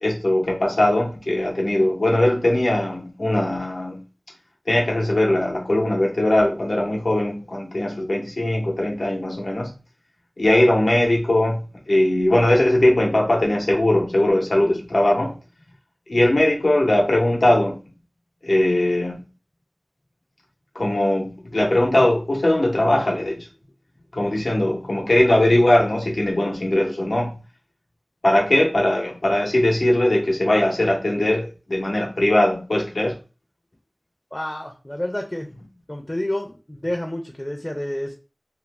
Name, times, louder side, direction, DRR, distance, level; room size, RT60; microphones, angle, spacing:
voice 1, 0.0-4.0 4.7-9.7 10.4-15.4 16.1-17.8 18.4-19.2 20.7-23.5 24.1-27.3 28.2-33.1, left 1 dB, 90° left, 0.7 m, -20 dB
voice 2, 34.3-35.5 35.9-38.1, left 1 dB, 30° left, 0.5 m, -29 dB
2.4 x 2.1 x 3.2 m
wide cardioid pair, 40°, 0 cm